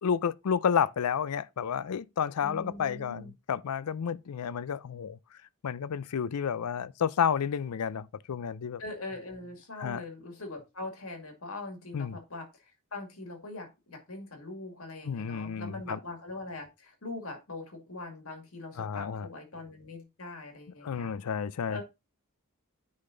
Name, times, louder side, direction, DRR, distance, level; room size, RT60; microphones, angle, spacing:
voice 1, 0.0-5.2 5.6-8.8 9.8-10.0 11.9-12.2 15.0-16.0 18.8-19.3 20.8-21.8, left 7 dB, 90° left, 0.4 m, -31 dB
voice 2, 2.4-3.3 8.8-21.1 21.7-21.8, left 2 dB, 70° left, 2.0 m, -42 dB
9.9 x 3.9 x 3.8 m
head